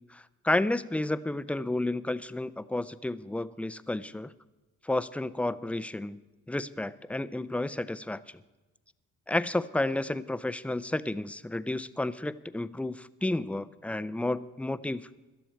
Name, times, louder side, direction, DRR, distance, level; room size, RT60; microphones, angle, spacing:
voice 1, 0.1-4.3 4.8-6.2 6.5-8.2 9.3-15.0, left 2 dB, 5° left, 15 dB, 0.5 m, -31 dB
18.0 x 12.0 x 4.5 m, 1.1 s
cardioid pair, 90°, 30 cm